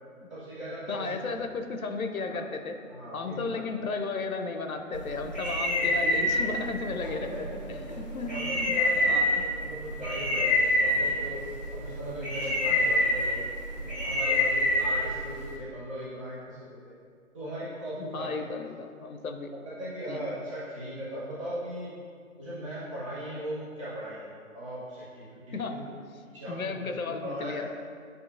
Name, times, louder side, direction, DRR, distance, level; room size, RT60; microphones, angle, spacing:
voice 1, 0.3-1.1 2.3-2.4 2.9-3.6 5.6-6.0 7.3-7.8 8.2-9.1 9.6-11.4 11.7-13.4 13.7-16.6 16.8-16.9 17.3-18.3 19.6-21.9 22.4-25.2 25.7-25.8 26.3-27.6, equal, 25° right, -11 dB, 1.3 m, -38 dB
voice 2, 0.9-2.8 3.1-9.4 18.0-19.5 20.1-20.2 25.5-25.8 26.5-27.7, left 4 dB, 90° left, 6 dB, 0.6 m, -34 dB
sound 1, 4.9-15.6, left 1 dB, 35° left, 0.4 m, -27 dB
7.6 x 2.8 x 2.5 m, 2.2 s
figure-of-eight pair, 150°, 41 cm